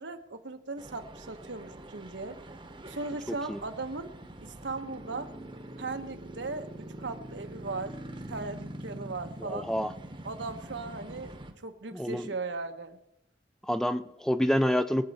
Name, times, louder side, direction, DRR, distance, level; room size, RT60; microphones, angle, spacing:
voice 1, 0.0-2.4 2.9-4.1 4.4-5.3 5.8-8.0 8.3-9.7 10.2-11.4 11.6-13.0, right 3 dB, 85° right, 7 dB, 1.1 m, -38 dB
sound 1, 0.8-11.5, right 1 dB, 30° right, 1.0 m, -44 dB
voice 2, 9.4-9.9 11.9-12.3 13.7-15.1, equal, 5° left, 11 dB, 0.4 m, -27 dB
22.5 x 7.7 x 4.2 m, 0.84 s
head